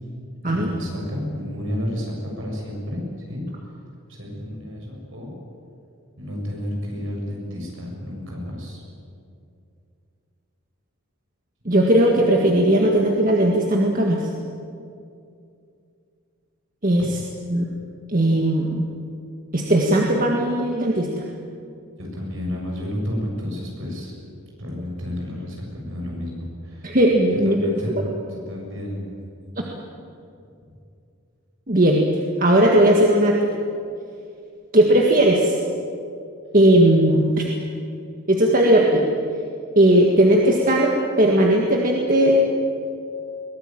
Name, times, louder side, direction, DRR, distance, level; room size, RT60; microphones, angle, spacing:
voice 1, 0.5-3.5 4.1-5.4 6.2-8.8 22.0-24.1 24.6-27.0 27.3-29.1, left 1 dB, 60° right, -1 dB, 7.1 m, -31 dB
voice 2, 11.7-14.3 16.8-17.2 17.5-17.6 18.1-18.8 19.5-21.2 26.8-27.6 31.7-32.1 32.4-33.3 34.7-35.6 36.5-37.4 38.3-39.1 39.8-42.5, right 1 dB, 40° right, -1 dB, 1.8 m, -17 dB
22.5 x 19.0 x 9.2 m, 2.5 s
head